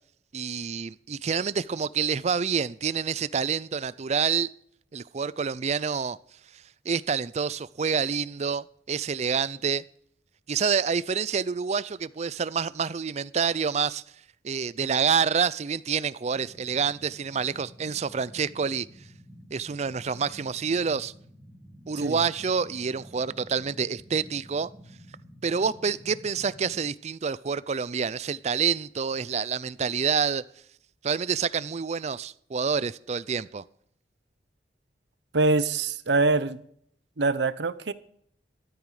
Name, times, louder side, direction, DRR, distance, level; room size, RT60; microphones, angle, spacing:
voice 1, 0.3-4.5 4.9-6.2 6.9-9.8 10.5-14.0 14.4-18.9 19.5-21.1 21.9-24.7 25.4-30.4 31.0-33.6, right 6 dB, 40° right, 0.4 m, -27 dB
sound 1, 16.3-26.8, equal, 10° right, 2.4 m, -50 dB
voice 2, 35.3-36.6 37.2-37.9, right 3 dB, 75° right, 0.8 m, -24 dB
13.0 x 13.0 x 4.9 m
head